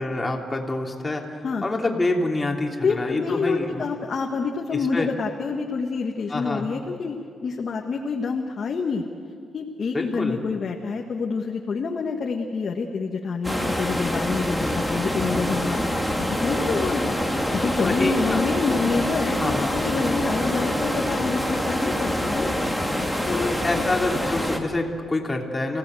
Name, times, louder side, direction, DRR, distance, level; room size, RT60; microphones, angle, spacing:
voice 1, 0.0-3.8 4.9-5.1 6.3-6.7 9.9-10.4 17.8-18.4 19.4-19.8 23.3-25.8, left 2 dB, 20° left, 0 dB, 3.3 m, -26 dB
voice 2, 2.8-9.0 9.5-15.8 16.2-17.2 17.5-22.5 22.9-23.8, left 4 dB, 50° left, 1 dB, 1.7 m, -27 dB
sound 1, 13.4-24.6, equal, 5° right, 2.4 m, -25 dB
29.0 x 17.5 x 8.0 m, 2.4 s
cardioid pair, 100°, 0 cm